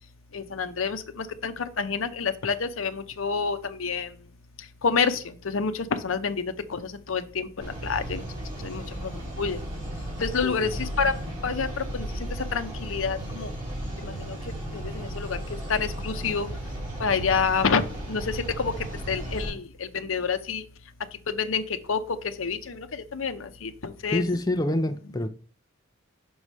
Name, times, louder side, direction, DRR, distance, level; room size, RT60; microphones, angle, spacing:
voice 1, 0.3-4.1 4.8-8.2 8.6-9.1 9.4-9.6 10.2-11.1 11.4-12.1 12.5-13.5 14.0-14.4 14.7-15.4 15.7-16.5 17.0-17.8 18.1-18.7 19.1-20.6 21.3-21.6 21.9-22.0 22.4-24.2, left 5 dB, 75° left, 0.7 m, -28 dB
sound 1, 7.6-19.5, right 1 dB, 20° right, 4.2 m, -35 dB
voice 2, 10.4-10.9 24.1-25.3, left 1 dB, 20° left, 0.4 m, -27 dB
6.2 x 4.8 x 5.5 m
head